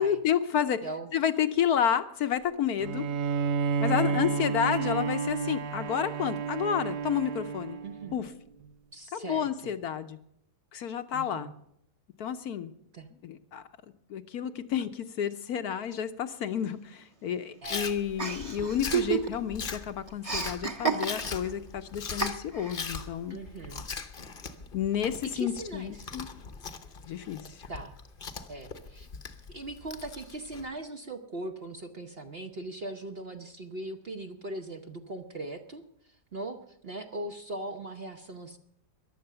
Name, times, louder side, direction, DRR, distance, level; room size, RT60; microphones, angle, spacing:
voice 1, 0.0-0.9 1.1-3.1 3.8-7.8 8.1-8.3 9.1-10.2 10.7-11.5 12.2-12.7 13.2-13.6 14.1-23.4 24.7-26.3 27.1-27.7, left 9 dB, 65° left, 10 dB, 1.1 m, -30 dB
Bowed string instrument, 2.8-8.3, right 5 dB, 85° right, 1.6 m, -31 dB
voice 2, 7.8-8.2 8.9-9.5 11.1-11.5 12.9-13.1 17.6-17.9 23.3-23.8 25.3-26.1 27.7-28.0 28.5-29.1 29.5-38.6, right 2 dB, 45° right, 5 dB, 0.9 m, -40 dB
Chewing mastication, 17.6-30.6, left 5 dB, 40° left, 0.9 m, -40 dB
Chuckle chortle, 18.2-19.6 19.8-21.5 22.2-22.8, right 6 dB, 20° right, 1.2 m, -30 dB
14.5 x 11.0 x 6.7 m, 0.75 s
omnidirectional pair, 1.9 m